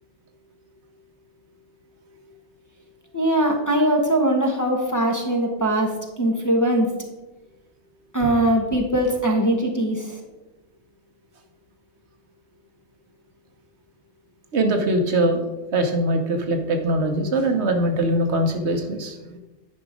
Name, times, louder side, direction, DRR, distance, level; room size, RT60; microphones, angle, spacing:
voice 1, 3.1-6.9 8.1-10.2, right 1 dB, 15° left, 0 dB, 1.0 m, -21 dB
voice 2, 14.5-15.4 15.7-19.4, right 1 dB, 70° right, 5 dB, 1.3 m, -22 dB
10.0 x 5.0 x 5.0 m, 1.1 s
omnidirectional pair, 1.2 m